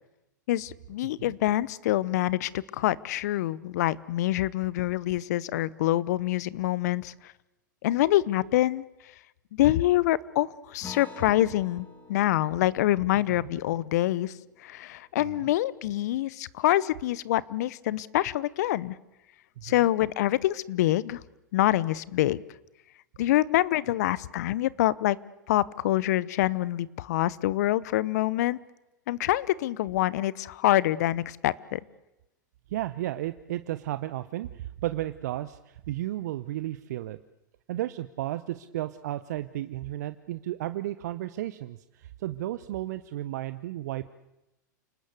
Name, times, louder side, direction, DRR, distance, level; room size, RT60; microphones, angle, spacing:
voice 1, 0.5-7.1 7.8-8.8 9.5-14.3 14.6-19.0 19.6-21.2 21.5-22.4 23.2-25.2 25.5-28.6 29.1-31.8, left 15 dB, 60° left, 21 dB, 0.8 m, -26 dB
voice 2, 1.0-1.3 13.4-13.5 15.2-15.5 19.6-19.9 32.7-37.2 37.7-44.1, right 14 dB, 60° right, 12 dB, 0.9 m, -34 dB
Acoustic guitar, 10.8-15.7, left 3 dB, 20° left, 2.5 m, -50 dB
29.0 x 19.5 x 8.2 m, 0.96 s
hypercardioid pair, 100°, 10 cm